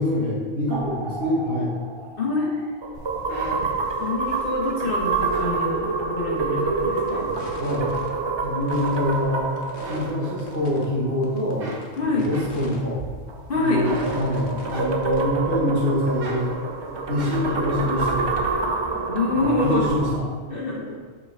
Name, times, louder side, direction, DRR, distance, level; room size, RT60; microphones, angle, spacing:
voice 1, 0.0-1.7 7.6-7.9 8.4-9.5 9.8-11.6 12.1-13.1 13.5-16.5 17.1-18.3 19.3-20.2, left 1 dB, 80° right, -7 dB, 2.2 m, -25 dB
sound 1, 0.7-11.3 13.3-20.2, right 4 dB, 40° right, 0.4 m, -27 dB
voice 2, 2.2-2.7 4.0-7.3 12.0-12.3 13.5-13.9 19.1-19.9 20.5-21.0, left 3 dB, 55° left, -2 dB, 1.3 m, -26 dB
sound 2, 2.9-6.4 6.8-7.9 8.4-9.4 9.7-11.0 11.3-15.3 15.7-17.7, right 1 dB, 60° right, 1.1 m, -38 dB
sound 3, 7.0-7.1 7.3-8.1 8.5-9.1 9.6-10.1 10.4-10.9 11.2-12.8 13.2-13.3 14.0-14.8 15.0-15.2, left 2 dB, 85° left, 1.2 m, -41 dB
5.8 x 5.4 x 3.5 m, 1.5 s
omnidirectional pair, 1.1 m